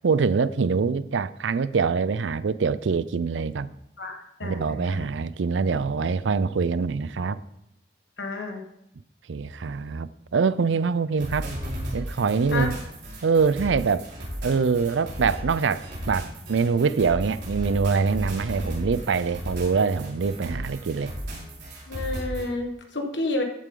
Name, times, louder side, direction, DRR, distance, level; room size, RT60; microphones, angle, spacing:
voice 1, 0.0-3.7 4.4-7.4 9.3-11.5 11.9-12.7 13.2-14.1 14.4-21.1, right 5 dB, 80° right, 16 dB, 0.5 m, -24 dB
voice 2, 4.0-5.0 8.2-8.6 12.5-12.7 21.9-23.4, left 2 dB, 70° left, 4 dB, 1.5 m, -30 dB
sound 1, 11.2-22.4, equal, 65° right, 4.7 m, -35 dB
14.0 x 8.1 x 3.8 m, 0.82 s
head